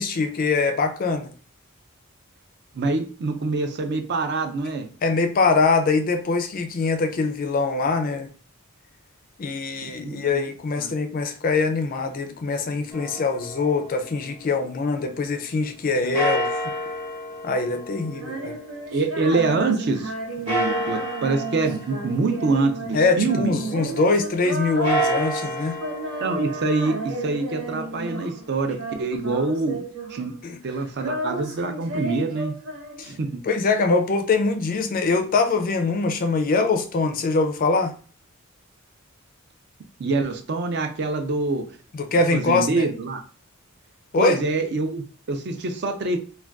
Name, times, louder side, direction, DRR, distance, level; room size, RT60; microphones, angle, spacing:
voice 1, 0.0-1.3 5.0-8.3 9.4-16.5 17.4-18.6 22.9-25.8 30.4-30.6 33.0-33.1 33.4-37.9 41.9-42.9 44.1-44.4, left 3 dB, 40° left, 0.3 m, -23 dB
voice 2, 2.7-4.9 10.0-10.5 10.8-10.9 18.2-18.4 18.9-23.7 26.2-29.8 30.1-30.3 30.6-32.5 33.0-33.4 40.0-41.6 42.3-43.2 44.2-46.2, right 3 dB, 50° right, 0.4 m, -25 dB
sound 1, 12.9-15.0 16.1-19.5 20.5-23.4 24.7-28.7, equal, 25° right, 0.9 m, -31 dB
Female singing, 18.1-28.4 28.7-30.4 30.6-33.3, right 2 dB, 85° right, 0.9 m, -32 dB
2.4 x 2.2 x 3.4 m
head